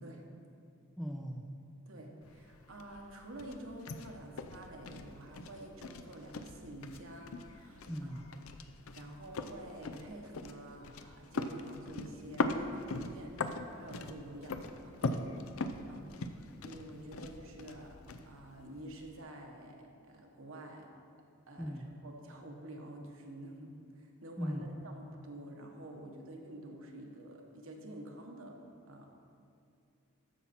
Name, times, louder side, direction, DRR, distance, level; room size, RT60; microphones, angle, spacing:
voice 1, 1.0-1.5 7.9-8.2 21.6-21.9 24.4-24.9, equal, ahead, 2 dB, 0.4 m, -39 dB
voice 2, 1.9-8.3 8.9-15.2 15.9-16.1 16.6-17.9 18.3-20.9 21.5-21.8 22.0-28.6 28.9-29.1, right 1 dB, 65° right, 1 dB, 1.2 m, -49 dB
sound 1, 2.2-19.2, left 3 dB, 70° left, 0.5 m, -41 dB
14.0 x 5.7 x 4.3 m, 2.5 s
head